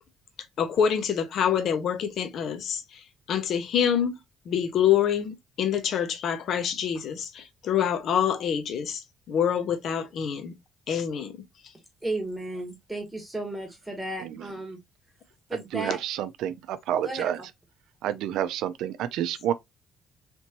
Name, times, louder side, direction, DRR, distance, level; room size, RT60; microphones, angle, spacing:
voice 1, 0.6-4.2 4.5-10.5 10.9-11.4, left 8 dB, 60° left, 0.6 m, -26 dB
voice 2, 12.0-14.8 15.5-16.0 17.0-17.5, right 2 dB, 5° right, 1.1 m, -34 dB
voice 3, 15.7-17.4 18.0-19.5, right 10 dB, 80° right, 0.4 m, -29 dB
3.4 x 3.0 x 2.8 m
cardioid pair, 125°, 0 cm